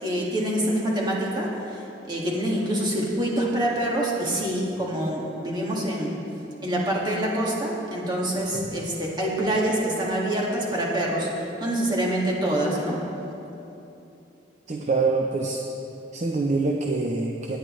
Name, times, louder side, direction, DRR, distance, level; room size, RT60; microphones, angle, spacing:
voice 1, 0.0-6.2 6.6-13.0, right 1 dB, 25° right, -4 dB, 1.9 m, -26 dB
voice 2, 14.7-15.6 16.1-17.6, right 3 dB, 40° right, 1 dB, 0.6 m, -25 dB
17.5 x 9.5 x 3.2 m, 2.9 s
head